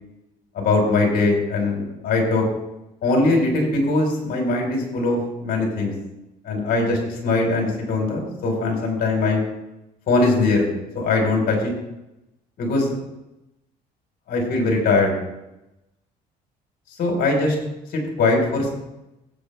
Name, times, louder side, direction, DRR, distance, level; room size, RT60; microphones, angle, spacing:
voice 1, 0.5-2.5 3.0-5.9 6.4-9.4 10.1-10.7 10.9-11.7 12.6-13.0 14.3-15.2 17.0-17.6 17.9-18.7, left 3 dB, 60° left, 0 dB, 4.3 m, -21 dB
15.0 x 8.1 x 3.4 m, 0.93 s
cardioid pair, 110°, 17 cm